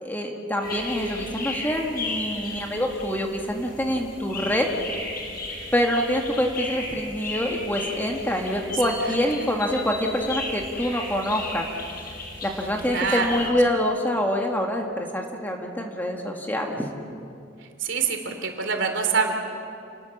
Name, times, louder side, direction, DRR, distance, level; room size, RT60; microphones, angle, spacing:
voice 1, 0.0-4.7 5.7-11.6 12.4-16.9, equal, 10° left, 1 dB, 1.8 m, -26 dB
sound 1, 0.6-13.5, left 2 dB, 50° left, 7.0 m, -35 dB
voice 2, 12.8-13.4 17.8-19.3, right 5 dB, 65° right, 4 dB, 3.2 m, -25 dB
29.5 x 20.0 x 7.3 m, 2.5 s
head